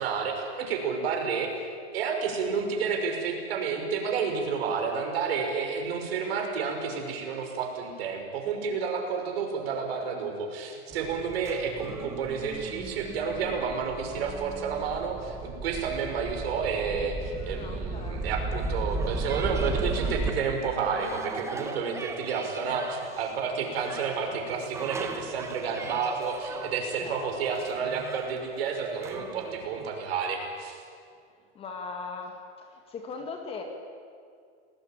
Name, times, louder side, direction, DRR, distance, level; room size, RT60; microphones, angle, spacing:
voice 1, 0.0-1.5 1.9-30.8, right 5 dB, 60° right, 3 dB, 5.9 m, -30 dB
sound 1, 10.9-29.9, right 3 dB, 10° right, 1.2 m, -36 dB
voice 2, 17.5-18.3 27.0-27.3 31.5-33.6, left 4 dB, 15° left, 4 dB, 2.0 m, -39 dB
28.0 x 19.0 x 8.9 m, 2.2 s
supercardioid pair, 165°, 34 cm